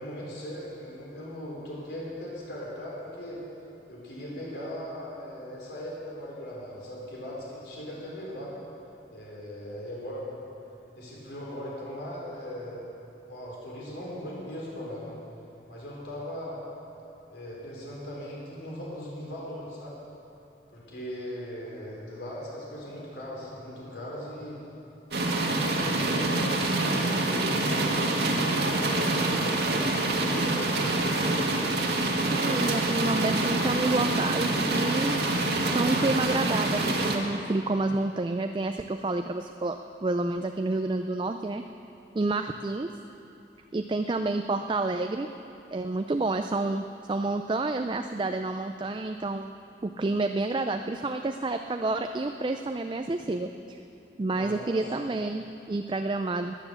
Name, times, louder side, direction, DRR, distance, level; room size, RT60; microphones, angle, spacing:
voice 1, 0.0-3.4 3.9-8.5 9.1-10.3 10.9-12.9 13.3-15.2 15.7-16.6 17.3-20.0 20.7-24.6 25.4-31.3 54.3-55.0, equal, 80° left, -5 dB, 4.3 m, -39 dB
sound 1, 25.1-37.2, right 2 dB, 70° right, 1.7 m, -26 dB
voice 2, 32.3-35.2 35.6-41.6 42.1-42.9 43.7-45.3 45.7-46.8 47.1-49.5 49.8-53.8 54.2-56.5, right 2 dB, 25° right, 6 dB, 0.4 m, -29 dB
17.0 x 10.0 x 7.0 m, 2.8 s
head